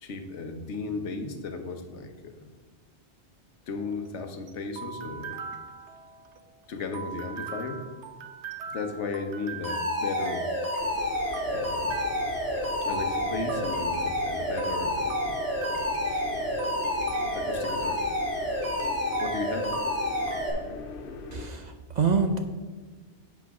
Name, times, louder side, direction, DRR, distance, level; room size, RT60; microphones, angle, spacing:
voice 1, 0.0-2.4 3.7-5.4 6.7-7.8 8.7-10.5 11.5-12.0 12.8-15.4 16.1-16.3 17.3-18.0 19.2-19.8, left 4 dB, 85° left, 6 dB, 1.2 m, -35 dB
sound 1, 3.8-20.5, right 6 dB, 80° right, 1.0 m, -42 dB
Alarm, 9.6-20.5, left 1 dB, 15° left, 2.1 m, -29 dB
sound 2, 10.8-21.5, left 4 dB, 55° left, 0.8 m, -41 dB
voice 2, 21.3-22.4, right 5 dB, 50° right, 6 dB, 0.6 m, -26 dB
8.4 x 4.6 x 5.9 m, 1.4 s
omnidirectional pair, 1.2 m